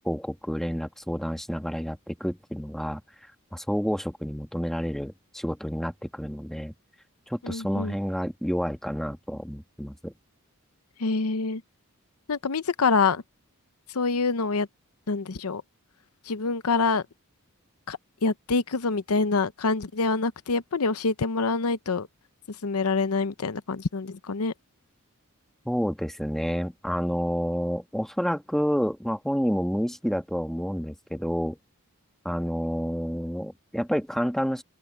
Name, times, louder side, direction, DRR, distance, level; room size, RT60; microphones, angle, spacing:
voice 1, 0.0-3.0 3.5-6.7 7.3-10.1 25.6-31.6 32.2-34.6, equal, ahead, 1.5 m, -29 dB
voice 2, 7.4-8.0 11.0-11.6 12.3-13.2 13.9-14.7 15.1-15.6 16.2-17.0 17.9-22.1 22.5-24.5, left 4 dB, 85° left, 0.8 m, -26 dB
open air
head